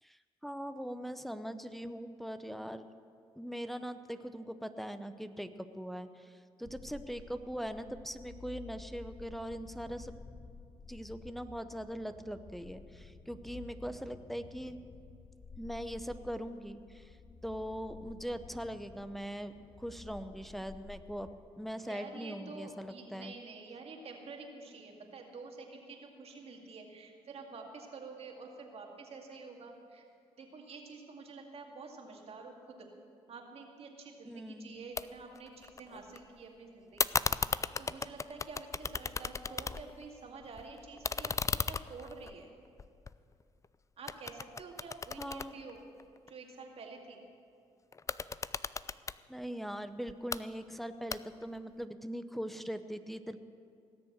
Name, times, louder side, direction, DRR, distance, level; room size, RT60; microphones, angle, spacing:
voice 1, 0.0-2.9 3.4-10.1 10.9-14.8 15.6-17.2 17.4-19.5 19.8-21.3 21.6-23.3 34.2-34.7 45.2-45.5 49.3-53.4, equal, ahead, 10 dB, 0.8 m, -41 dB
sound 1, 6.6-21.4, left 4 dB, 40° left, 1.0 m, -52 dB
voice 2, 21.9-30.1 30.4-32.9 33.3-42.5 44.0-45.8 46.3-47.2, right 4 dB, 55° right, 1 dB, 2.2 m, -49 dB
sound 2, 35.0-35.1 35.4-36.2 37.0-40.1 40.4-43.7 44.1-46.3 47.9-49.2 50.1-50.4 51.1-51.6, left 4 dB, 25° left, 0.4 m, -36 dB
18.0 x 7.0 x 8.0 m, 2.4 s
supercardioid pair, 60°, 12 cm